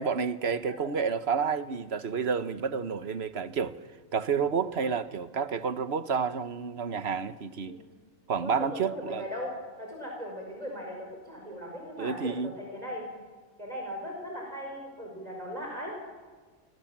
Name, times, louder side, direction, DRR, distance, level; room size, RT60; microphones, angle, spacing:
voice 1, 0.0-3.8 4.1-7.8 8.3-9.2 12.0-12.5, right 6 dB, 55° right, 11 dB, 1.4 m, -30 dB
voice 2, 8.4-9.5 9.8-13.1 13.6-16.0, equal, 30° right, 0 dB, 5.5 m, -38 dB
29.5 x 25.5 x 7.4 m, 1.4 s
omnidirectional pair, 1.3 m